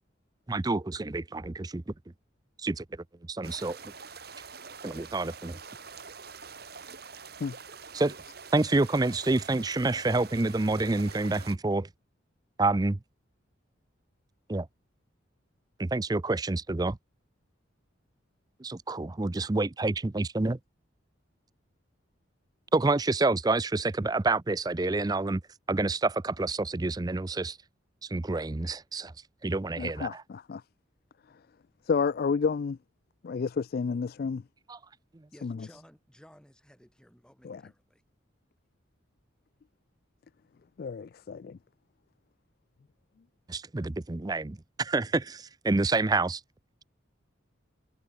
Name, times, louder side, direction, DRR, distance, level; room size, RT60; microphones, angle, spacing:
voice 1, 0.5-1.9 2.6-2.8 3.3-3.8 4.8-5.6 7.9-8.1 8.5-11.9 12.6-13.0 14.5-14.7 15.8-17.0 18.6-20.6 22.7-25.4 25.7-27.6 28.1-29.1 29.4-30.2 34.7-34.8 43.5-46.4, right 2 dB, 20° right, 0.5 m, -28 dB
sound 1, 3.4-11.6, right 5 dB, 55° right, 4.3 m, -46 dB
voice 2, 29.8-30.6 31.9-32.8 33.2-34.4 35.4-35.7 37.4-37.6 40.8-41.6, left 5 dB, 50° left, 0.3 m, -30 dB
voice 3, 35.3-38.0, equal, 5° left, 7.5 m, -56 dB
head